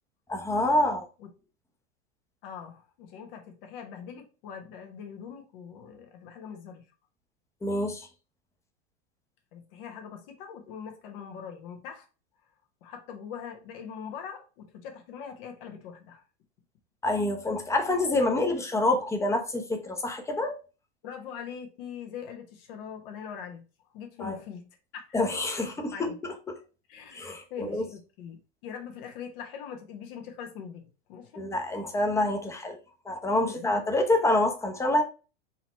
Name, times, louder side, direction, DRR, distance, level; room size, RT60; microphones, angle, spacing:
voice 1, 0.3-1.1 7.6-8.1 17.0-20.5 24.2-24.4 25.1-26.1 27.2-27.8 31.4-32.8 33.1-35.0, left 2 dB, 10° left, 0.7 m, -27 dB
voice 2, 2.4-6.9 9.5-12.1 12.8-16.2 21.0-23.7 23.9-24.7 24.9-25.2 25.6-26.2 26.9-31.4 33.4-33.7, left 7 dB, 60° left, 1.2 m, -42 dB
4.0 x 3.0 x 3.0 m
hypercardioid pair, 105°, 32 cm